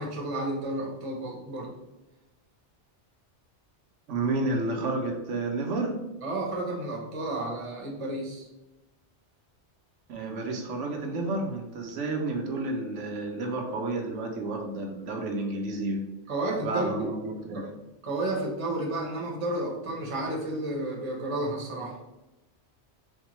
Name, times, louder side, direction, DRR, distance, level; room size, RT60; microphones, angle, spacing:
voice 1, 0.0-1.7 6.2-8.5 16.3-17.1 17.5-17.6 18.0-22.0, right 1 dB, 35° right, -2 dB, 0.7 m, -31 dB
voice 2, 4.1-6.0 10.1-16.0 16.6-17.7, right 2 dB, 80° right, 1 dB, 1.0 m, -31 dB
4.3 x 2.1 x 3.0 m, 1.0 s
omnidirectional pair, 1.2 m